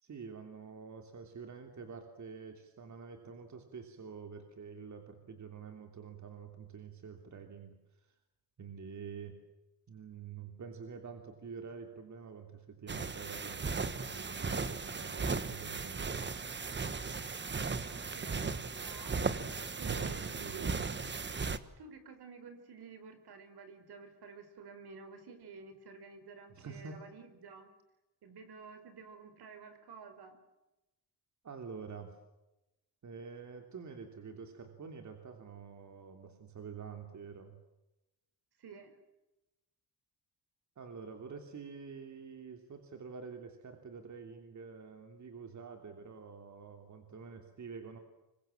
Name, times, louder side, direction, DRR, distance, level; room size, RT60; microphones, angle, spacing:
voice 1, 0.0-8.1 8.6-9.4 9.9-16.2 19.8-20.7 26.5-27.0 31.4-32.2 33.0-37.6 40.8-48.0, right 5 dB, 45° right, 5 dB, 3.1 m, -47 dB
sound 1, 12.9-21.6, right 4 dB, 25° right, 1.4 m, -37 dB
voice 2, 17.9-19.2 19.5-20.9 21.8-27.7 28.2-30.4 38.6-39.0, right 5 dB, 65° right, 9 dB, 5.3 m, -51 dB
26.0 x 24.0 x 7.5 m, 0.97 s
cardioid pair, 135°, 41 cm